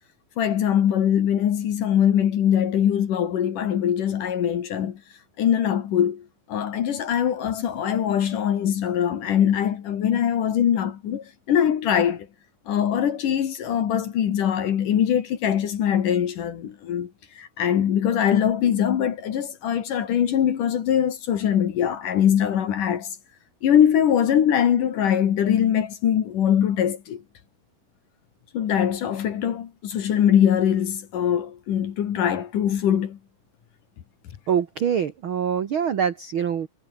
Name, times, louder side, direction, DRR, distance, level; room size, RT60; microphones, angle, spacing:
voice 1, 0.4-5.0 5.4-6.2 6.5-12.3 12.7-17.1 17.4-23.1 23.6-27.2 28.5-33.2, left 9 dB, 65° left, 3.3 m, -22 dB
voice 2, 34.5-36.7, right 8 dB, 60° right, 1.4 m, -24 dB
omnidirectional pair, 4.2 m